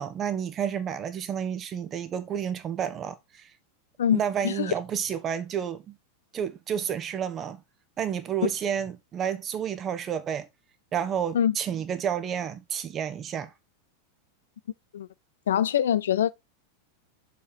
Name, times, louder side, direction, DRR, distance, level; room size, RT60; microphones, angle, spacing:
voice 1, 0.0-3.5 4.1-6.0 6.3-7.6 8.0-10.5 10.9-13.5, right 8 dB, 25° right, 1.1 m, -30 dB
voice 2, 4.0-4.7 11.3-11.6 14.9-15.1 15.5-16.3, left 9 dB, 65° left, 0.4 m, -24 dB
6.6 x 5.2 x 4.4 m
figure-of-eight pair, 90°, 0 cm